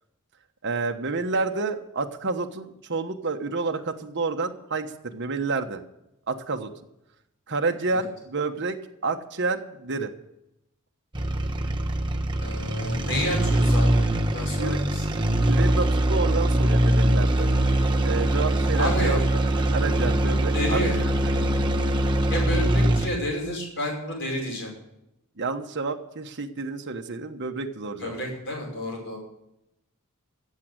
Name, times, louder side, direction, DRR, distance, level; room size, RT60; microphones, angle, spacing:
voice 1, 0.6-5.8 6.3-6.7 7.5-8.8 9.0-10.1 14.6-14.9 15.5-17.5 18.0-19.2 19.7-21.5 25.4-28.2, right 3 dB, 55° right, 5 dB, 1.2 m, -29 dB
sound 1, 11.1-23.2, right 1 dB, 20° right, 1.1 m, -23 dB
voice 2, 12.4-15.0 18.8-19.2 20.5-21.0 22.3-24.7 28.0-29.2, equal, 55° left, 0 dB, 5.5 m, -30 dB
15.0 x 7.5 x 8.1 m, 0.86 s
head